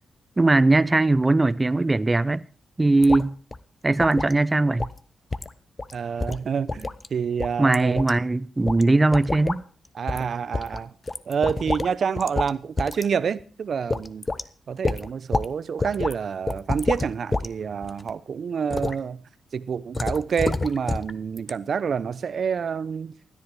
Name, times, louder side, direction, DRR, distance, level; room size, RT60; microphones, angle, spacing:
voice 1, 0.4-2.4 2.8-3.4 3.8-4.9 7.6-9.6, right 2 dB, 25° right, 0.7 m, -20 dB
sound 1, 3.0-3.3 3.5-3.6 4.0-4.4 4.8-5.0 5.3-5.5 5.8-5.9 6.2-7.1 7.4-8.1 8.7-8.8 9.1-9.6 10.1-10.3 10.5-11.9 12.2-12.5 12.8-13.1 13.4-13.5 13.9-14.4 14.8-15.5 15.8-16.1 16.5-17.5 17.8-18.1 18.7-19.0 19.9-21.1 21.4-21.5, left 3 dB, 30° left, 0.9 m, -28 dB
voice 2, 5.9-8.1 9.9-10.9 11.3-14.3 14.7-19.2 19.5-23.1, right 6 dB, 65° right, 0.8 m, -28 dB
16.5 x 10.5 x 4.8 m
cardioid pair, 60°, 0 cm